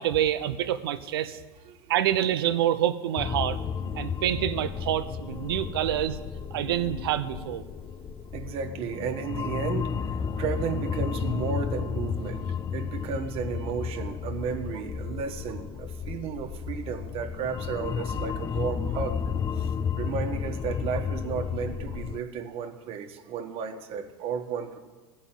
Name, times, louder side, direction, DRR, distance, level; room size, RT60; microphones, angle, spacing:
voice 1, 0.0-1.4 1.9-3.6 3.9-6.2 6.5-7.6, right 11 dB, 90° right, 11 dB, 0.8 m, -27 dB
sound 1, 3.2-22.2, left 6 dB, 30° left, 0.4 m, -32 dB
voice 2, 8.3-19.2 19.6-24.8, right 6 dB, 50° right, 5 dB, 1.4 m, -33 dB
15.5 x 5.4 x 9.1 m, 1.3 s
supercardioid pair, 105°, 12 cm